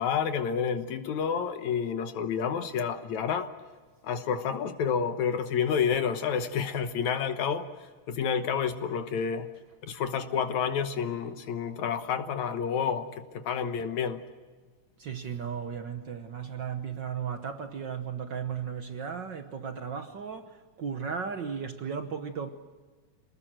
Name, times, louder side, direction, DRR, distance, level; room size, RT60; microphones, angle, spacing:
voice 1, 0.0-3.5 4.0-7.7 8.1-9.5 9.9-14.2, left 7 dB, 70° left, 2.4 m, -29 dB
voice 2, 15.0-22.5, right 7 dB, 65° right, 1.1 m, -35 dB
27.5 x 19.5 x 7.6 m
omnidirectional pair, 3.6 m